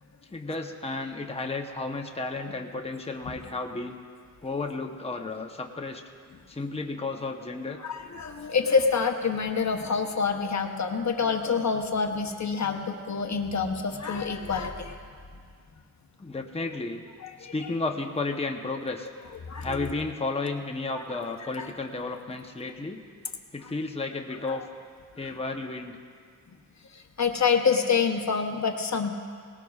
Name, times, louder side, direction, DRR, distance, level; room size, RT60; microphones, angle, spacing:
voice 1, 0.3-4.0 4.4-6.0 6.5-7.8 16.2-17.0 17.5-19.1 19.6-23.0 23.5-24.6 25.2-26.0, left 3 dB, 20° left, 3 dB, 0.9 m, -33 dB
voice 2, 7.8-15.0 17.2-17.7 19.5-19.9 20.9-21.0 21.4-21.7 24.4-24.5 26.9-29.1, left 5 dB, 55° left, 4 dB, 0.9 m, -27 dB
19.0 x 18.0 x 2.4 m, 2.1 s
wide cardioid pair, 85°, 34 cm